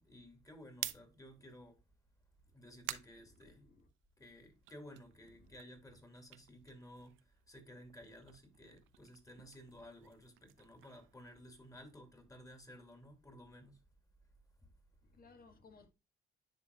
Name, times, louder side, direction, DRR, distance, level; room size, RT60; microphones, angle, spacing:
voice 1, 0.0-1.8 2.5-3.7 4.2-13.8, equal, 15° left, 2.3 m, -55 dB
sound 1, 0.6-4.1 4.5-7.5 7.8-11.9, right 14 dB, 85° right, 0.6 m, -50 dB
voice 2, 3.3-3.9 5.3-5.5 15.0-15.9, left 3 dB, 50° left, 1.7 m, -62 dB
10.5 x 4.2 x 2.3 m
cardioid pair, 90°, 20 cm